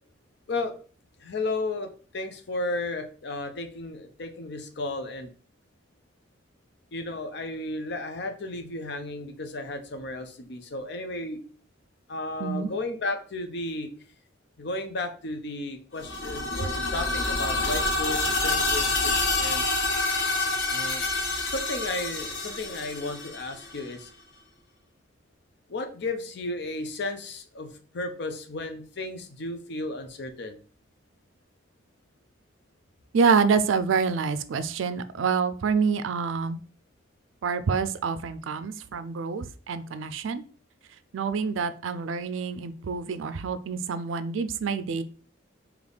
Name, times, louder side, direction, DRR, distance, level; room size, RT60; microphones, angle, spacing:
voice 1, 1.2-5.3 6.9-11.4 12.1-13.9 14.6-19.6 20.7-21.1 21.5-24.1 25.7-27.7 27.9-30.6, left 2 dB, 60° left, 7 dB, 0.6 m, -34 dB
sound 1, 16.0-23.8, left 2 dB, 90° left, 1.1 m, -27 dB
voice 2, 33.1-36.6 37.4-40.4 41.1-45.0, right 5 dB, 80° right, 12 dB, 0.4 m, -27 dB
3.4 x 2.9 x 3.9 m, 0.42 s
head